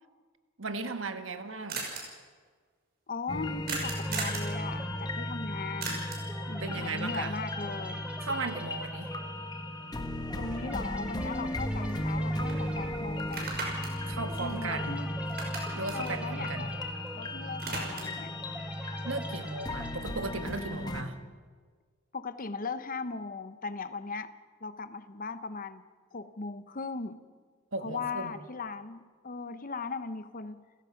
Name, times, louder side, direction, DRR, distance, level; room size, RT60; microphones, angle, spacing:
voice 1, 0.6-1.9 6.6-7.3 8.2-9.3 14.0-15.0 15.7-16.7 19.0-21.2 27.7-28.4, right 3 dB, 70° right, 8 dB, 1.5 m, -36 dB
sound 1, 1.7-2.0 3.7-4.5 5.8-6.3 10.5-10.6 11.0-12.2 12.5-12.6 13.2-15.0 15.3-17.1 17.4-18.2, right 3 dB, 55° right, 5.8 m, -37 dB
voice 2, 3.1-6.0 6.5-8.1 10.3-13.5 14.4-15.1 15.9-16.7 17.1-18.4 22.1-24.3 24.6-25.8 26.1-27.2 27.8-30.6, left 4 dB, 45° left, 11 dB, 0.9 m, -38 dB
sound 2, 3.3-21.0, left 1 dB, 20° left, 1.3 m, -35 dB
sound 3, 3.9-21.1, right 1 dB, 5° right, 1.8 m, -46 dB
30.0 x 16.0 x 5.9 m, 1.5 s
head